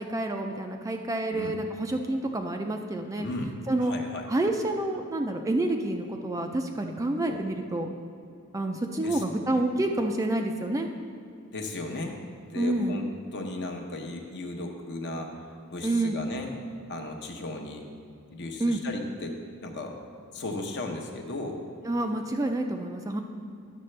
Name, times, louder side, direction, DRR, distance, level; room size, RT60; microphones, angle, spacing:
voice 1, 0.0-3.3 3.7-3.9 4.3-7.9 8.5-10.9 12.6-13.0 15.8-16.2 18.6-18.8 21.8-23.2, right 1 dB, 15° right, 4 dB, 0.3 m, -28 dB
voice 2, 3.2-3.5 3.8-4.2 7.2-7.4 9.0-9.2 9.5-9.6 11.5-12.2 12.5-13.0 13.3-15.3 15.7-16.5 16.9-17.8 18.3-19.4 19.6-20.0 20.3-21.6, left 2 dB, 50° left, 3 dB, 0.8 m, -35 dB
10.0 x 6.7 x 3.2 m, 2.4 s
head